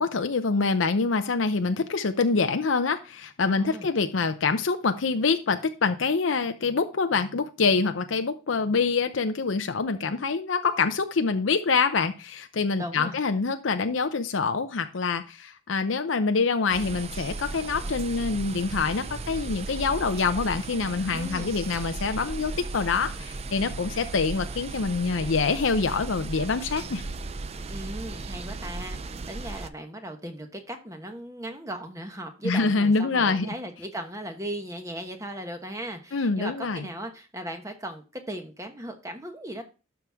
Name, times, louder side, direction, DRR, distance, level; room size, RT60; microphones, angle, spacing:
voice 1, 0.0-27.0 32.4-33.5 36.1-36.9, left 4 dB, 80° left, 8 dB, 0.6 m, -25 dB
voice 2, 3.4-3.9 12.7-13.2 21.1-21.5 27.7-39.6, right 1 dB, 15° right, 5 dB, 1.2 m, -37 dB
sound 1, 16.7-29.7, right 3 dB, 30° right, 0.4 m, -36 dB
12.0 x 6.0 x 3.5 m, 0.33 s
head